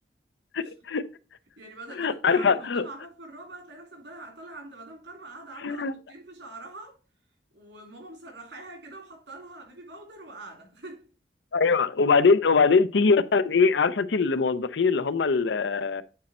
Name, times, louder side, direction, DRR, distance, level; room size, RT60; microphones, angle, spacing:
voice 1, 0.5-1.0 2.0-2.8 5.6-5.9 11.5-16.0, left 4 dB, 80° left, 0.6 m, -22 dB
voice 2, 1.6-7.0 7.5-11.1, right 2 dB, 80° right, 3.0 m, -44 dB
9.1 x 4.3 x 4.2 m
head